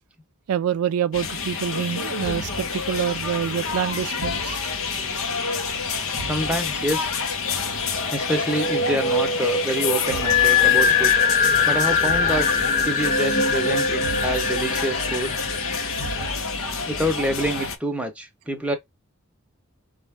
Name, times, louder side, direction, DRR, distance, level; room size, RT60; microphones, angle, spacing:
voice 1, 0.5-4.6, right 9 dB, 85° right, 0.3 m, -26 dB
sound 1, 1.1-17.8, left 4 dB, 70° left, 0.9 m, -28 dB
voice 2, 6.2-7.1 7.9-11.1 11.6-12.5 12.8-15.3 16.8-18.8, right 1 dB, 5° right, 0.8 m, -27 dB
sound 2, 7.9-16.2, left 5 dB, 35° left, 0.5 m, -22 dB
5.1 x 2.5 x 3.3 m
head